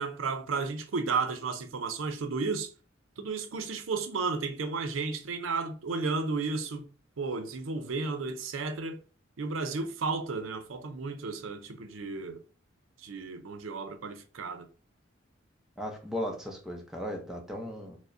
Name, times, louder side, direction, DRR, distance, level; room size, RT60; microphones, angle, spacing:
voice 1, 0.0-2.7 3.2-6.9 7.2-9.0 9.4-12.4 13.0-14.7, right 4 dB, 90° right, 0.5 m, -33 dB
voice 2, 15.8-18.0, equal, ahead, 0.6 m, -36 dB
4.7 x 2.1 x 2.5 m
head